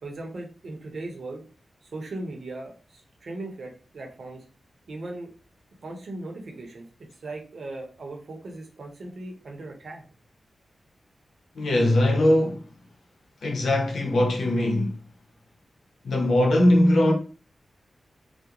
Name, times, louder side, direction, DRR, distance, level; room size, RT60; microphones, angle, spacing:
voice 1, 0.0-1.4 1.8-4.4 4.9-5.3 5.8-6.9 7.1-10.0, right 2 dB, 70° right, 0.7 m, -38 dB
voice 2, 11.5-12.6 13.4-14.9 16.0-17.1, left 1 dB, 85° left, 0.6 m, -20 dB
2.4 x 2.0 x 2.8 m
cardioid pair, 65°, 0 cm